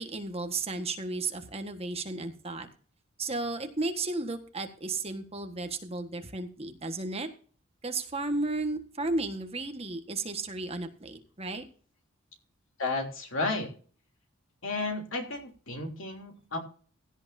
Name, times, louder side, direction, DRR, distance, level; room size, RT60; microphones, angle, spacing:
voice 1, 0.0-2.7 3.2-7.3 7.8-11.6, right 3 dB, 30° right, 6 dB, 1.4 m, -34 dB
voice 2, 12.8-13.7 14.6-16.6, left 3 dB, 65° left, 3 dB, 3.2 m, -32 dB
16.5 x 11.0 x 2.7 m, 0.42 s
head